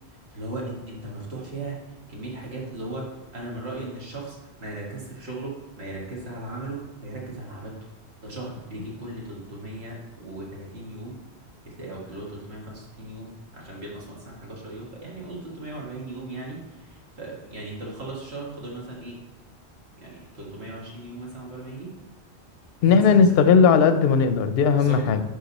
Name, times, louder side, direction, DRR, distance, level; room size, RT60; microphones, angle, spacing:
voice 1, 0.1-3.1 3.3-7.7 8.2-11.2 11.6-19.2 20.0-21.9 22.8-23.2 24.8-25.0, right 2 dB, 70° right, -4 dB, 2.2 m, -37 dB
voice 2, 22.8-25.2, left 6 dB, 65° left, 10 dB, 0.7 m, -17 dB
10.5 x 3.8 x 4.1 m, 1.1 s
omnidirectional pair, 1.1 m